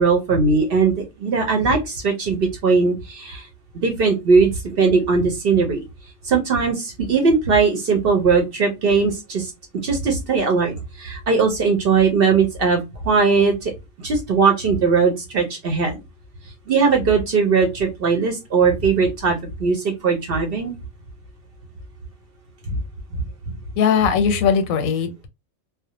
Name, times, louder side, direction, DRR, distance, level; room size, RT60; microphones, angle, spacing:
voice 1, 0.0-3.5 3.7-5.8 6.2-9.5 9.8-13.7 14.0-16.0 16.7-20.7 22.7-22.8 23.1-23.2, right 5 dB, 60° right, 0.7 m, -19 dB
voice 2, 23.8-25.3, left 7 dB, 90° left, 1.0 m, -19 dB
2.3 x 2.0 x 2.7 m
omnidirectional pair, 1.4 m